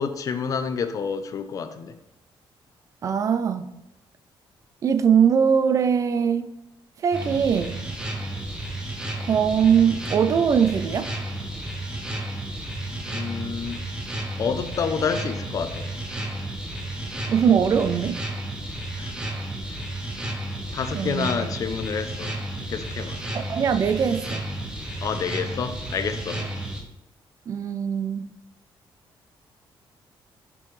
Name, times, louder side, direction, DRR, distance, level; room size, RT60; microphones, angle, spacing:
voice 1, 0.0-1.9 13.1-13.8 14.4-15.9 19.0-19.1 19.7-19.8 20.7-22.4 22.7-23.2 25.0-26.4, left 6 dB, 40° left, 0.5 m, -28 dB
voice 2, 3.0-3.7 4.8-6.5 7.0-7.9 9.2-11.1 17.3-18.2 20.9-21.3 23.3-24.6 26.4-26.5 27.5-28.3, right 7 dB, 35° right, 0.4 m, -21 dB
sound 1, 7.1-26.8, right 1 dB, 10° right, 0.8 m, -32 dB
7.0 x 5.3 x 3.1 m
cardioid pair, 180°, 9 cm